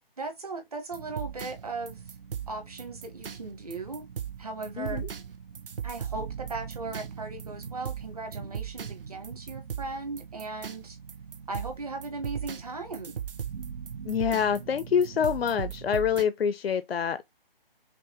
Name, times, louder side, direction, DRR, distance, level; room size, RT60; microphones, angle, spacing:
voice 1, 0.2-2.1 2.5-4.1 4.4-5.0 5.8-11.0 11.5-13.2, right 3 dB, 40° right, 1.1 m, -37 dB
sound 1, 0.9-16.2, right 8 dB, 65° right, 0.6 m, -39 dB
voice 2, 4.8-5.1 14.1-17.2, left 7 dB, 80° left, 0.6 m, -26 dB
5.9 x 2.0 x 2.9 m
hypercardioid pair, 180°, 30 cm